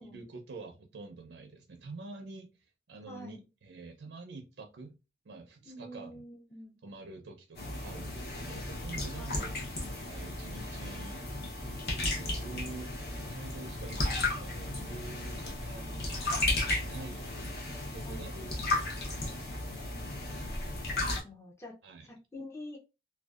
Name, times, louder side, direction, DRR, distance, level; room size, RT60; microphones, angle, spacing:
voice 1, 0.0-2.5 2.9-5.0 5.3-6.2 6.8-9.6 10.1-11.2 11.9-12.9 13.3-16.2 16.8-17.3 17.9-18.8 21.8-22.1, right 3 dB, 90° right, 0.5 m, -47 dB
voice 2, 3.1-3.4 5.7-6.8 9.2-9.5 18.0-18.3 20.8-21.7 22.1-22.8, left 1 dB, 15° left, 0.4 m, -47 dB
sound 1, 7.6-21.2, left 2 dB, 60° left, 0.7 m, -34 dB
2.6 x 2.2 x 2.3 m
head